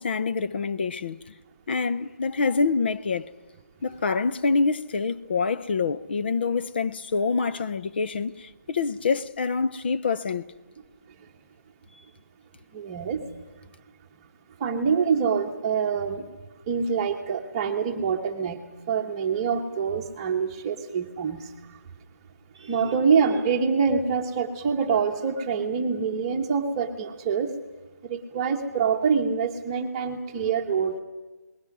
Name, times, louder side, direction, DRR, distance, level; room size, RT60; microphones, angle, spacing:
voice 1, 0.0-1.3 1.7-3.3 3.8-10.5, left 4 dB, 35° left, 0.6 m, -26 dB
voice 2, 12.7-13.2 14.6-16.3 16.7-18.6 18.9-21.4 22.6-27.5 28.0-31.0, right 6 dB, 20° right, 1.3 m, -25 dB
29.5 x 20.0 x 6.1 m
hypercardioid pair, 170°, 9 cm